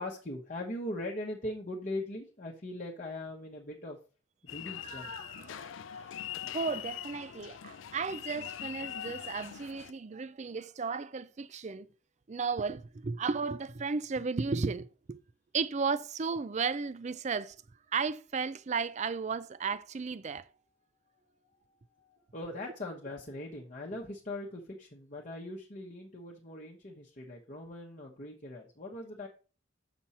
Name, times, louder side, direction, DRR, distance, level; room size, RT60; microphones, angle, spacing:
voice 1, 0.0-4.0 4.4-5.1 22.0-29.3, left 1 dB, 40° left, 1.0 m, -40 dB
sound 1, 4.5-9.9, left 10 dB, 75° left, 0.4 m, -42 dB
voice 2, 4.8-6.1 6.4-11.9 12.3-15.2 15.5-17.6 17.9-20.5, right 5 dB, 35° right, 0.4 m, -34 dB
7.1 x 6.1 x 4.2 m
head